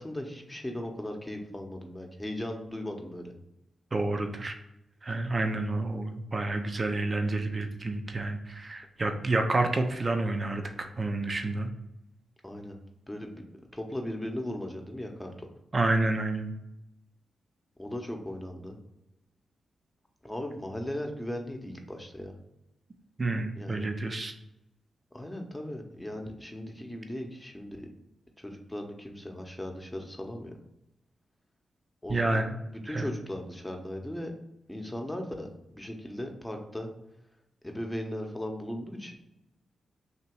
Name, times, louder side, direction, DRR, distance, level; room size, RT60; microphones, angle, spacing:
voice 1, 0.0-3.3 12.4-12.8 13.1-13.4 13.7-15.5 17.8-18.8 20.2-22.3 23.6-23.9 25.1-27.9 28.4-30.5 32.0-32.5 32.8-34.3 34.7-35.5 35.7-36.9 37.6-39.1, left 1 dB, 15° left, 3 dB, 0.9 m, -37 dB
voice 2, 3.9-4.5 5.0-11.7 15.7-16.5 23.2-24.3 32.1-32.6 32.9-33.1, right 2 dB, 40° right, 5 dB, 0.6 m, -29 dB
2.9 x 2.8 x 4.4 m, 0.89 s
supercardioid pair, 40°, 0 cm